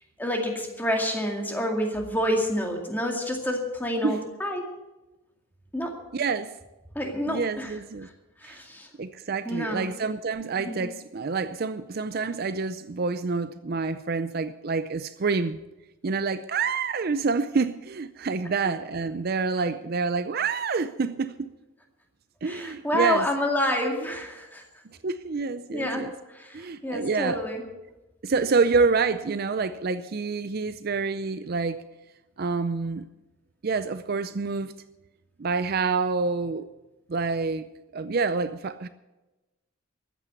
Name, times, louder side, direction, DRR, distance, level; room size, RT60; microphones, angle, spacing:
voice 1, 0.2-4.7 5.7-5.9 7.0-7.7 8.0-8.1 8.4-8.9 9.4-9.9 10.6-10.8 22.4-24.6 25.7-27.6, equal, 10° left, 2.1 m, -28 dB
voice 2, 6.1-6.5 7.3-8.1 8.4-8.6 9.0-15.6 16.0-21.5 22.4-23.3 25.0-26.1 26.5-27.4 28.2-31.8 32.4-33.1 33.6-34.7 35.4-36.7 37.1-37.7 37.9-38.9, right 4 dB, 45° right, 0.5 m, -27 dB
14.0 x 9.0 x 8.2 m
head